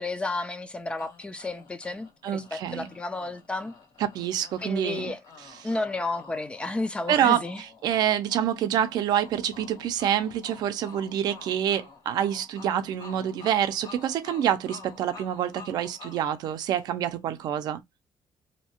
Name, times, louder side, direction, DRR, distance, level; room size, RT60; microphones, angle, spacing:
voice 1, 0.0-3.7 4.6-5.2 5.6-7.6, left 2 dB, 15° left, 0.4 m, -32 dB
sound 1, 1.0-17.2, left 5 dB, 70° left, 1.6 m, -49 dB
voice 2, 2.2-2.9 4.1-5.1 7.1-7.4 7.8-17.8, right 10 dB, 65° right, 0.5 m, -27 dB
2.7 x 2.2 x 2.8 m
cardioid pair, 160°, 7 cm